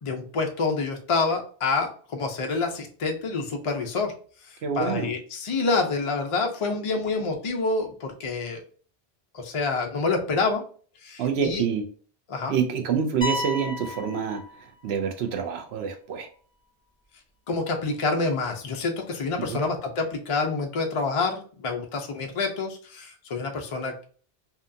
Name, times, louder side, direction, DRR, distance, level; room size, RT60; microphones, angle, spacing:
voice 1, 0.0-4.1 4.5-8.6 9.3-10.6 11.0-11.6 12.3-12.5 17.5-24.0, left 3 dB, 60° left, 2 dB, 0.3 m, -27 dB
voice 2, 4.6-5.1 11.2-11.8 12.5-14.4 14.8-16.3 19.4-19.6, right 7 dB, 75° right, 4 dB, 0.8 m, -27 dB
sound 1, 13.2-15.1, left 2 dB, 5° left, 0.9 m, -33 dB
2.7 x 2.3 x 2.5 m, 0.43 s
omnidirectional pair, 1.1 m